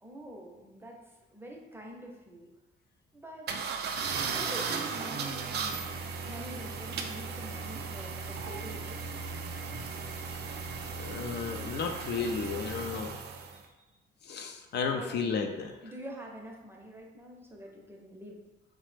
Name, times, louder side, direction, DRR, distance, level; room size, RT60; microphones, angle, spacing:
voice 1, 0.0-1.0 1.3-2.5 3.1-3.5 4.1-5.9 6.2-9.1 14.9-15.5 15.8-18.4, right 1 dB, 10° right, -1 dB, 0.6 m, -46 dB
sound 1, 3.5-13.6, right 5 dB, 55° right, 0.4 m, -36 dB
voice 2, 10.9-13.2 14.2-15.7, left 5 dB, 60° left, 4 dB, 0.4 m, -33 dB
3.1 x 2.1 x 3.2 m, 1.1 s
cardioid pair, 90°, 20 cm